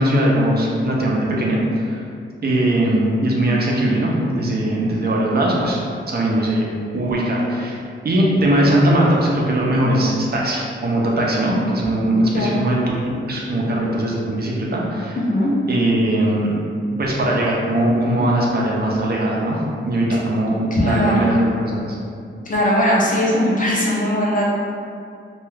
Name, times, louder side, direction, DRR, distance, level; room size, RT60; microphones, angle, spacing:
voice 1, 0.0-2.0 2.4-5.8 6.1-6.7 6.9-7.7 8.0-12.8 13.1-15.2 15.7-16.6 17.0-19.6 19.8-22.0, right 1 dB, 50° right, -3 dB, 0.5 m, -20 dB
voice 2, 15.2-15.5 20.1-20.2 20.7-21.3 22.4-24.4, equal, 40° left, -5 dB, 0.6 m, -19 dB
2.3 x 2.2 x 3.2 m, 2.3 s
wide cardioid pair, 120°, 21 cm